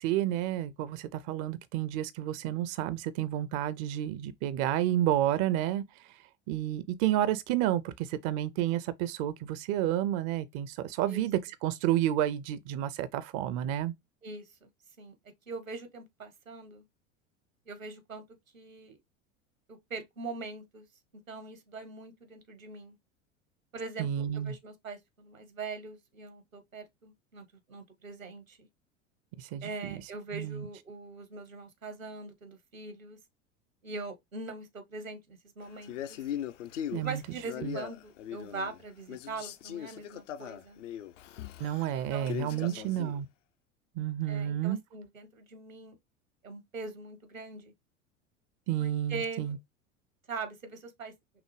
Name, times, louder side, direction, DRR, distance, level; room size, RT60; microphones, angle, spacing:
voice 1, 0.0-5.8 6.5-13.9 24.0-24.5 29.4-30.0 30.3-30.6 36.9-37.2 37.6-37.8 41.6-43.3 44.0-44.8 48.7-49.6, right 12 dB, 35° right, 0.4 m, -30 dB
voice 2, 14.2-14.7 15.0-15.1 15.5-16.8 17.7-18.2 18.5-19.0 19.7-20.8 21.3-23.0 23.7-28.7 29.6-33.2 33.8-36.2 37.0-40.8 42.1-42.9 44.3-46.0 46.4-47.7 48.8-49.6 50.3-51.1, right 4 dB, 85° right, 1.2 m, -42 dB
Male speech man speaking, 35.8-38.8 39.1-43.2, left 11 dB, 70° left, 0.6 m, -40 dB
5.7 x 2.0 x 3.2 m
figure-of-eight pair, 80°, 39 cm